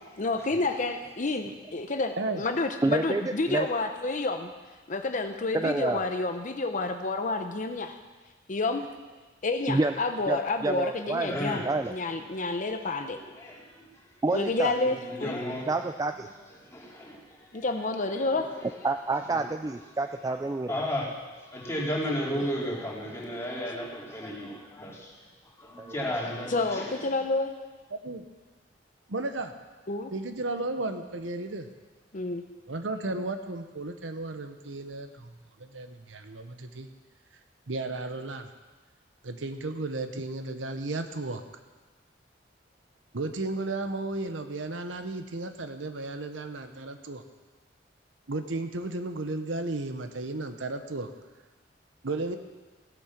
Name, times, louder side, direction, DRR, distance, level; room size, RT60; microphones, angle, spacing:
voice 1, 0.2-4.5 4.9-8.0 8.5-8.9 9.4-11.6 11.9-13.2 14.3-15.4 17.5-18.5 26.5-27.5 29.9-30.1 32.1-32.5, left 3 dB, 45° left, 7 dB, 0.7 m, -29 dB
voice 2, 2.8-3.7 5.5-6.0 9.7-9.9 10.3-11.4 11.7-11.9 14.2-14.7 15.7-16.3 18.8-20.7 25.8-26.1, right 3 dB, 20° right, 7 dB, 0.3 m, -28 dB
voice 3, 11.3-11.8 12.3-12.7 13.1-13.9 14.3-15.7 16.6-17.6 18.1-18.8 20.2-20.4 20.7-21.1 21.5-25.1 25.6-27.1, equal, 15° left, -5 dB, 2.9 m, -34 dB
voice 4, 27.9-28.2 29.1-29.5 30.1-31.7 32.7-36.9 37.7-38.5 39.2-41.4 43.1-47.2 48.3-51.1 52.0-52.4, right 2 dB, 90° right, 8 dB, 1.0 m, -34 dB
16.0 x 8.5 x 6.0 m, 1.3 s
head